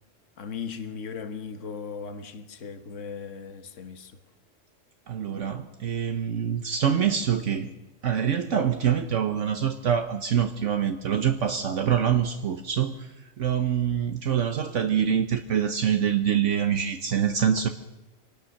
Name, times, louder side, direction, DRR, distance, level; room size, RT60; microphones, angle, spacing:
voice 1, 0.4-4.2, left 6 dB, 70° left, 1.6 m, -37 dB
voice 2, 5.1-7.7 8.0-13.1 13.4-17.7, right 8 dB, 70° right, 1.3 m, -25 dB
23.5 x 19.0 x 6.5 m
omnidirectional pair, 1.3 m